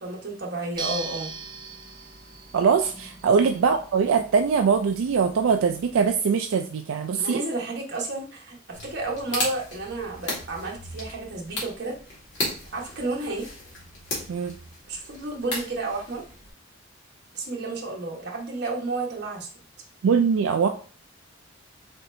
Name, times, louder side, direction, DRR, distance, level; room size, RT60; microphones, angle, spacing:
voice 1, 0.0-1.3 3.3-3.5 7.2-11.9 12.7-13.5 14.9-16.2 17.3-19.5, right 2 dB, 55° right, -1 dB, 1.3 m, -31 dB
sound 1, 0.7-6.1, right 4 dB, 20° right, 0.7 m, -40 dB
voice 2, 2.5-7.4 14.3-14.6 20.0-20.7, right 6 dB, 85° right, 5 dB, 0.4 m, -22 dB
sound 2, 8.7-16.5, left 1 dB, 60° left, 1.9 m, -35 dB
4.2 x 4.2 x 2.7 m, 0.41 s
head